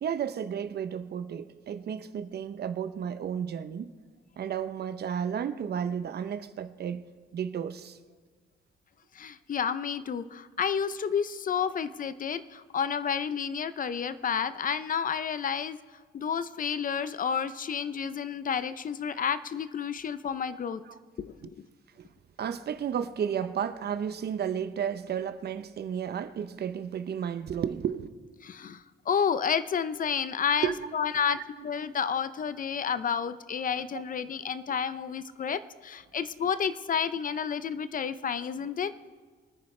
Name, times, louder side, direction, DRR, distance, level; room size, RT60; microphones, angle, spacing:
voice 1, 0.0-3.9 4.4-7.0 7.3-8.0 20.9-21.0 22.0-22.1 22.4-28.1 30.6-31.4 33.9-34.0, right 8 dB, 55° right, 0.7 m, -33 dB
voice 2, 9.1-15.8 16.1-20.8 21.2-21.5 28.4-38.9, left 7 dB, 45° left, 0.6 m, -30 dB
25.0 x 9.6 x 3.2 m
cardioid pair, 90°, 20 cm